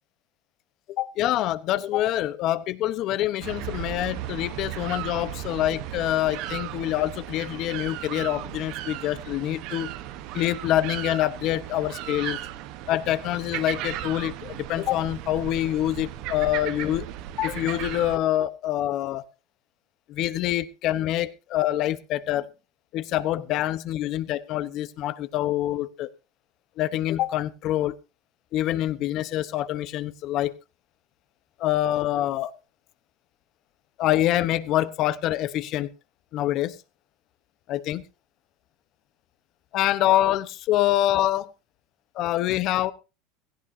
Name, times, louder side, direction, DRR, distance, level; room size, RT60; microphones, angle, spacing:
voice 1, 1.0-9.9 10.3-12.4 12.9-17.1 17.4-19.2 20.1-22.5 22.9-26.1 26.8-27.9 28.5-30.5 31.6-32.5 34.0-35.9 36.3-36.8 37.7-38.0 39.7-41.5 42.1-42.9, left 14 dB, 55° left, 15 dB, 1.1 m, -26 dB
sound 1, 3.4-18.2, right 12 dB, 65° right, 1.2 m, -36 dB
16.5 x 16.0 x 2.8 m, 0.30 s
supercardioid pair, 110°, 0 cm